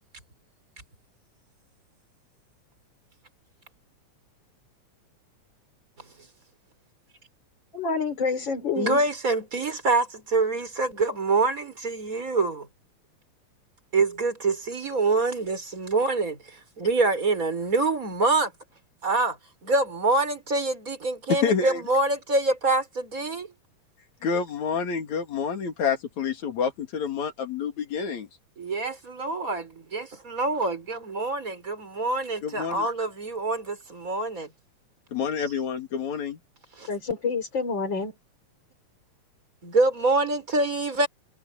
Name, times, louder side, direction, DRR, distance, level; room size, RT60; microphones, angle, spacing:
voice 1, 7.7-9.0 36.9-38.1, left 4 dB, 40° left, 4.0 m, -28 dB
voice 2, 8.7-12.7 13.9-18.5 19.0-23.5 28.6-34.5 36.8-36.9 39.6-41.1, right 3 dB, 25° right, 5.6 m, -26 dB
voice 3, 21.3-21.8 24.2-28.3 32.4-32.9 35.1-36.4, left 6 dB, 75° left, 3.8 m, -28 dB
omnidirectional pair, 3.3 m